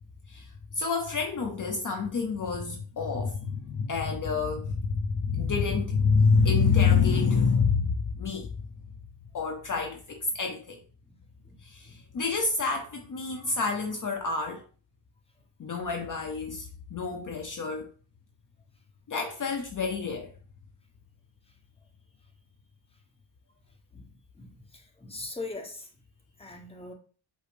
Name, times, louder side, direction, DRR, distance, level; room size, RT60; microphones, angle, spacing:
voice 1, 0.3-8.5 9.3-10.8 11.6-14.6 15.6-17.9 19.1-20.3, left 5 dB, 45° left, 0.7 m, -27 dB
voice 2, 24.4-25.9 26.4-26.9, left 3 dB, 15° left, 1.0 m, -41 dB
5.0 x 2.1 x 4.8 m
cardioid pair, 95°, 46 cm